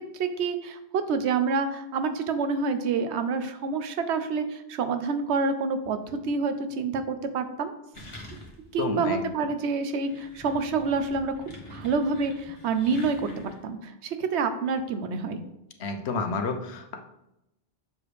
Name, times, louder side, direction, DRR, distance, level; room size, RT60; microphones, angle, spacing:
voice 1, 0.0-7.7 8.7-11.3 11.7-15.4, right 4 dB, 90° right, 9 dB, 0.9 m, -28 dB
sound 1, 7.9-8.8 9.1-9.2 9.9-13.7, left 1 dB, 30° left, 1.0 m, -45 dB
voice 2, 8.8-9.3 15.8-17.0, left 4 dB, 75° left, 5 dB, 1.0 m, -30 dB
6.9 x 4.9 x 3.2 m, 0.87 s
omnidirectional pair, 1.1 m